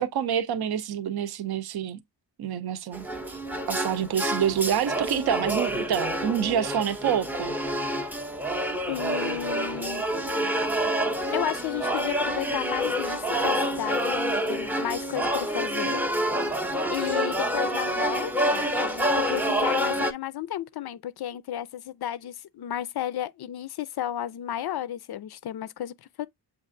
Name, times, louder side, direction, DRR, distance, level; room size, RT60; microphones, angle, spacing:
voice 1, 0.0-2.0 2.4-3.4 3.7-7.6, right 9 dB, 60° right, 0.6 m, -27 dB
sound 1, 2.9-20.1, equal, 5° right, 0.5 m, -28 dB
voice 2, 8.9-10.0 10.4-10.6 11.3-16.0 16.9-26.3, left 11 dB, 60° left, 0.5 m, -33 dB
7.2 x 2.5 x 2.5 m
wide cardioid pair, 115°, 43 cm